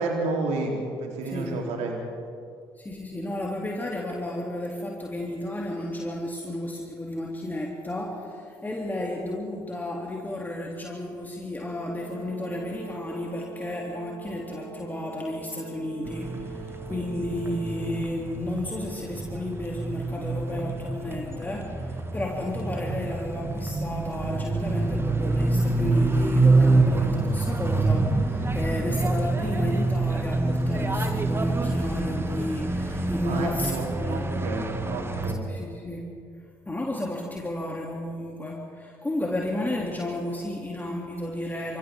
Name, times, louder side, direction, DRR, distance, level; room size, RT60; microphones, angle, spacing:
voice 1, 0.0-2.0 33.2-35.4, right 3 dB, 60° right, 0 dB, 3.6 m, -30 dB
voice 2, 2.8-34.3 35.5-36.1 36.7-41.8, left 1 dB, 15° left, -2 dB, 2.9 m, -32 dB
Brass instrument, 11.6-17.9, right 6 dB, 55° left, 6.7 m, -44 dB
sound 1, 16.1-35.3, right 2 dB, 20° right, 1.8 m, -26 dB
28.5 x 26.5 x 3.7 m, 2.3 s
figure-of-eight pair, 50°, 13 cm